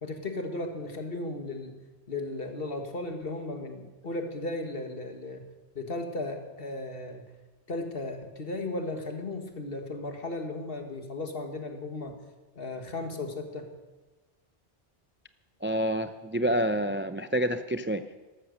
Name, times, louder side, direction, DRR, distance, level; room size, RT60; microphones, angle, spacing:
voice 1, 0.0-1.7 2.1-5.4 5.8-7.2 7.7-12.2 12.6-13.8, left 2 dB, 60° left, 5 dB, 1.9 m, -35 dB
voice 2, 15.6-18.0, equal, 20° right, 10 dB, 0.3 m, -28 dB
13.5 x 13.0 x 6.5 m, 1.2 s
omnidirectional pair, 1.1 m